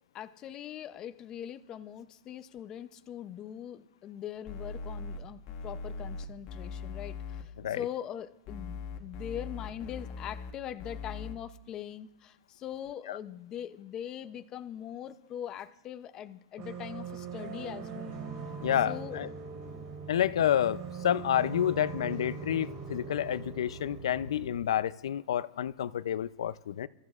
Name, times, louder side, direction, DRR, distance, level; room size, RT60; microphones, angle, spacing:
voice 1, 0.1-18.2 18.7-19.3, left 10 dB, 25° left, 9 dB, 0.6 m, -42 dB
sound 1, 4.5-5.2 5.5-7.4 8.5-10.5 10.8-11.3, left 4 dB, 40° left, 1.2 m, -40 dB
sound 2, 16.6-24.6, right 5 dB, 40° right, 3.3 m, -41 dB
voice 2, 18.6-19.3 20.1-26.9, left 10 dB, 85° left, 17 dB, 0.5 m, -29 dB
29.0 x 14.0 x 2.4 m, 0.89 s
supercardioid pair, 160°, 3 cm